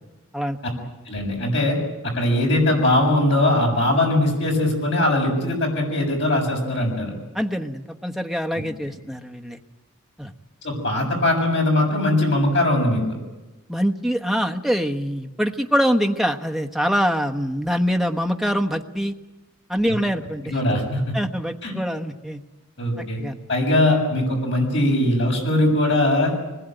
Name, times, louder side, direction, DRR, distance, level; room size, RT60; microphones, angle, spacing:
voice 1, 1.1-1.8 2.1-7.1 10.6-13.0 20.5-21.1 21.6-21.7 22.8-23.2 23.5-26.4, left 1 dB, 55° left, 1 dB, 7.4 m, -20 dB
voice 2, 7.3-9.6 10.2-10.3 13.7-19.1 19.7-20.6 21.1-22.4 23.0-23.4, equal, ahead, 4 dB, 1.1 m, -24 dB
25.0 x 21.0 x 9.1 m, 1.1 s
head